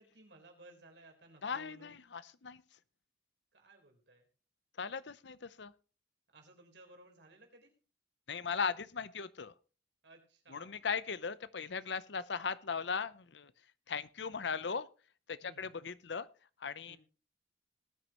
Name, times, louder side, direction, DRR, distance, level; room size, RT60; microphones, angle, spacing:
voice 1, 0.0-2.0 3.5-4.3 6.3-7.7 10.0-10.7 11.8-11.9 15.4-15.7 16.9-17.0, right 2 dB, 70° right, 2 dB, 4.0 m, -59 dB
voice 2, 1.4-2.6 4.8-5.7 8.3-9.5 10.5-13.5 13.9-14.9 15.3-16.3 16.6-17.0, left 5 dB, 70° left, 16 dB, 0.7 m, -38 dB
19.0 x 9.6 x 3.0 m, 0.35 s
head